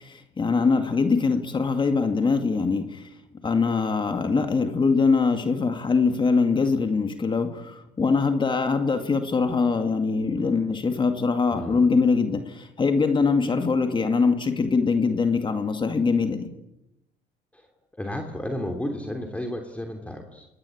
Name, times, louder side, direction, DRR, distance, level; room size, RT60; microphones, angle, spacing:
voice 1, 0.0-3.2 3.4-16.5, left 4 dB, 30° left, 6 dB, 2.2 m, -23 dB
voice 2, 11.5-11.9 17.5-17.7 18.0-20.5, left 1 dB, 10° left, 3 dB, 3.1 m, -32 dB
27.0 x 19.0 x 8.7 m, 0.89 s
cardioid pair, 110°, 17 cm